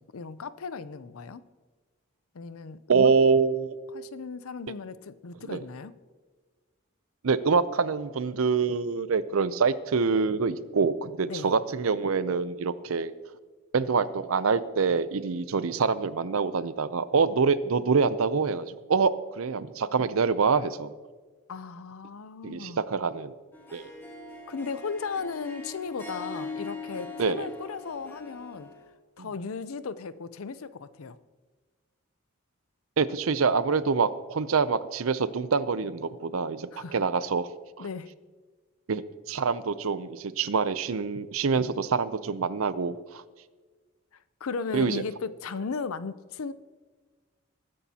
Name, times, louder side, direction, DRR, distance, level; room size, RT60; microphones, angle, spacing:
voice 1, 0.0-1.4 2.3-3.1 3.9-5.9 11.2-11.5 21.5-22.8 24.5-28.7 29.2-31.2 36.7-37.0 37.8-38.1 44.4-46.5, left 5 dB, 80° left, 0.6 m, -36 dB
voice 2, 2.9-3.8 5.5-5.6 7.2-13.1 13.7-20.9 22.4-23.3 23.7-23.9 27.2-27.5 29.2-29.3 33.0-37.5 37.8-37.9 38.9-39.0 39.3-43.2 44.7-45.0, right 5 dB, 75° right, 0.6 m, -25 dB
Harp, 23.5-28.9, left 3 dB, 10° left, 1.3 m, -41 dB
20.5 x 10.0 x 2.9 m
head